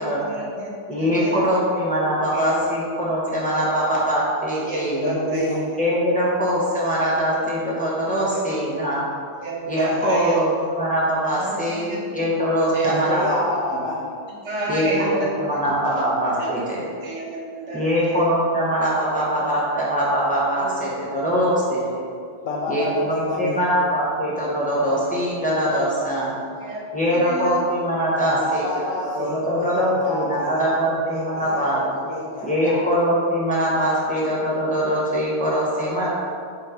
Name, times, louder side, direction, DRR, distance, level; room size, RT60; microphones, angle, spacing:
voice 1, 0.0-1.4 2.0-2.1 2.3-2.5 3.5-3.6 4.5-5.5 7.0-7.1 9.4-10.4 11.4-12.0 12.7-13.1 14.4-15.6 16.4-16.5 17.0-18.2 22.8-22.9 26.6-26.8 27.1-27.6 31.4-31.9 32.5-32.8 33.9-34.2 36.0-36.1, right 2 dB, 70° right, -3 dB, 1.5 m, -30 dB
voice 2, 0.9-5.0 5.8-9.0 9.7-13.4 14.7-16.8 17.7-22.1 22.7-26.3 26.9-31.8 32.4-36.1, equal, 5° left, -7 dB, 1.1 m, -22 dB
voice 3, 5.0-5.6 12.8-14.0 22.4-23.6 28.2-32.9, left 2 dB, 60° left, -2 dB, 0.9 m, -28 dB
7.4 x 2.9 x 5.0 m, 2.3 s
omnidirectional pair, 1.2 m